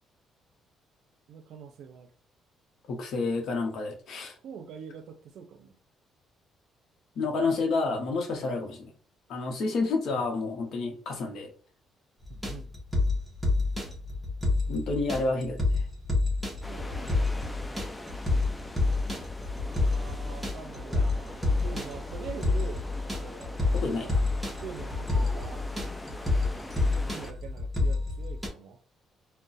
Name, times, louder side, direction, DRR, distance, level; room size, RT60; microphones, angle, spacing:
voice 1, 1.3-2.1 4.4-5.7 12.3-12.7 16.7-17.5 19.6-23.6 24.6-25.7 26.5-28.8, right 7 dB, 70° right, 0.5 m, -44 dB
voice 2, 2.9-4.3 7.2-8.9 9.3-11.5 14.7-15.6 23.7-24.2, left 3 dB, 65° left, 0.7 m, -29 dB
sound 1, 12.2-28.5, left 3 dB, 15° right, 0.9 m, -28 dB
sound 2, 16.6-27.3, left 1 dB, 10° left, 0.3 m, -43 dB
2.4 x 2.1 x 3.9 m
cardioid pair, 120°, 0 cm